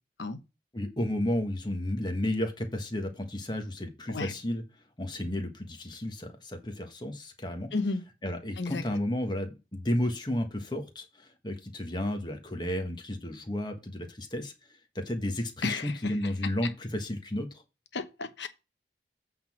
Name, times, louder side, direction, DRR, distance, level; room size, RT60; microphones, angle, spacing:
voice 1, 0.7-4.6 5.0-7.7 8.2-14.5 14.9-17.5, left 1 dB, 25° left, 1.4 m, -32 dB
voice 2, 7.7-8.0 8.6-8.8 15.6-16.1 17.9-18.5, left 3 dB, 90° left, 1.1 m, -32 dB
8.6 x 3.8 x 6.1 m
head